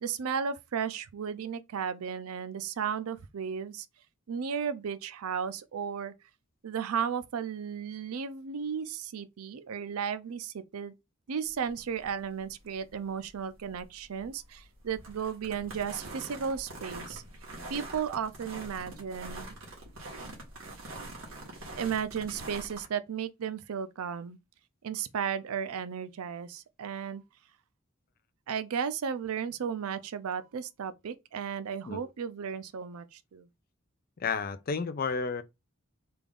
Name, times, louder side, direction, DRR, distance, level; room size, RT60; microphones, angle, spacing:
voice 1, 0.0-3.9 4.3-6.1 6.6-10.9 11.3-17.2 17.7-19.5 21.8-24.4 24.8-27.2 28.5-33.5, right 7 dB, 85° right, 0.4 m, -34 dB
sound 1, 11.5-22.9, right 2 dB, 65° right, 1.4 m, -44 dB
voice 2, 34.2-35.4, left 5 dB, 40° left, 0.4 m, -31 dB
3.4 x 2.4 x 3.5 m
head